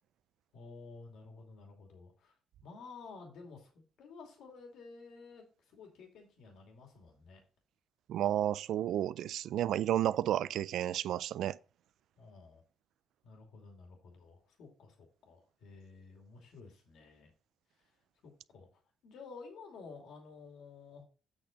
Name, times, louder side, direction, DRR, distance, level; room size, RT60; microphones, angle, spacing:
voice 1, 0.5-2.3 2.6-7.4 12.2-12.6 13.2-17.3 17.8-21.0, left 4 dB, 80° left, 2.7 m, -52 dB
voice 2, 8.1-11.6, right 11 dB, 75° right, 0.3 m, -32 dB
8.3 x 6.0 x 3.9 m
cardioid pair, 90°, 0 cm